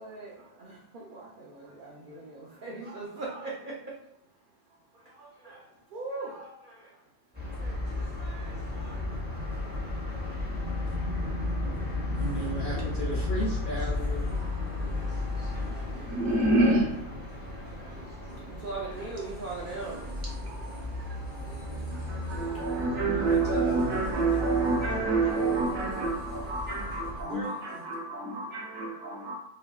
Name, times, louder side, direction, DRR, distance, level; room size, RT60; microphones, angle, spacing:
voice 1, 0.0-10.3 13.9-17.0 17.3-27.9, right 3 dB, 55° right, -4 dB, 0.6 m, -44 dB
sound 1, 7.3-27.2, left 2 dB, 10° right, 0.6 m, -34 dB
voice 2, 12.2-14.3 14.6-15.1 23.0-24.1, equal, 50° left, -5 dB, 0.6 m, -36 dB
voice 3, 16.0-16.9 21.7-29.4, right 3 dB, 70° right, -3 dB, 1.4 m, -28 dB
5.3 x 2.5 x 2.3 m, 0.79 s
omnidirectional pair, 1.4 m